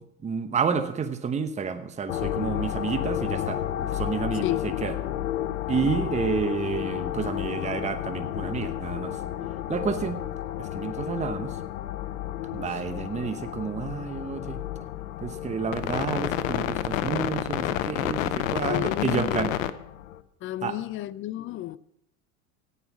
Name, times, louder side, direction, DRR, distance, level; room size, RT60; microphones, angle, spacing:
voice 1, 0.0-5.0 5.7-9.2 9.7-10.2 10.6-11.6 12.5-14.6 15.2-19.5 20.6-20.8, right 5 dB, 15° right, 0.9 m, -30 dB
sound 1, 2.1-20.2, left 12 dB, 75° left, 0.8 m, -31 dB
voice 2, 18.6-19.5 20.4-21.8, left 15 dB, 30° left, 0.5 m, -32 dB
17.0 x 5.7 x 6.2 m
hypercardioid pair, 85°, 40 cm